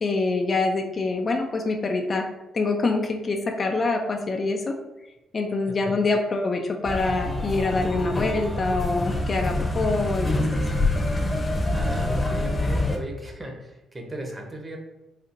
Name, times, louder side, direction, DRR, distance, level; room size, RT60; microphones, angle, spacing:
voice 1, 0.0-2.3 2.5-4.8 5.3-10.6, left 3 dB, 40° left, 4 dB, 0.4 m, -25 dB
voice 2, 5.7-6.0 11.7-14.8, right 1 dB, 25° right, 1 dB, 0.8 m, -36 dB
sound 1, 6.8-13.0, left 2 dB, 15° left, 0.7 m, -26 dB
4.2 x 2.5 x 2.5 m, 0.99 s
cardioid pair, 90°, 0 cm